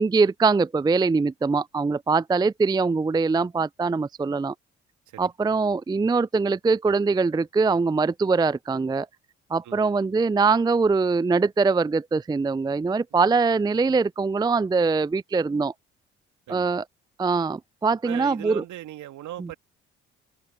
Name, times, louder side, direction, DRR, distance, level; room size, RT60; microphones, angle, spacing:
voice 1, 0.0-4.5 5.2-9.1 9.5-15.7 16.5-16.8 17.2-18.6 19.4-19.5, right 4 dB, 15° right, 0.5 m, -23 dB
voice 2, 18.0-19.6, right 13 dB, 65° right, 2.7 m, -38 dB
open air
hypercardioid pair, 45°, 32 cm